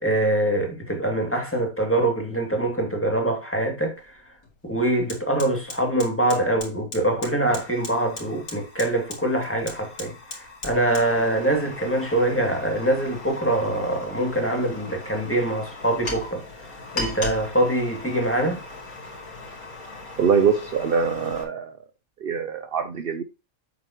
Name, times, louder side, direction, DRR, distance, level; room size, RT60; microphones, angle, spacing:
voice 1, 0.0-4.2 4.6-16.4 16.9-18.6, right 1 dB, 10° left, 2.4 m, -24 dB
Fire, 4.0-4.1 4.4-21.4, left 2 dB, 80° left, 3.4 m, -38 dB
voice 2, 20.2-21.7 22.2-23.2, right 6 dB, 50° right, 0.8 m, -23 dB
8.1 x 8.1 x 3.0 m
omnidirectional pair, 1.5 m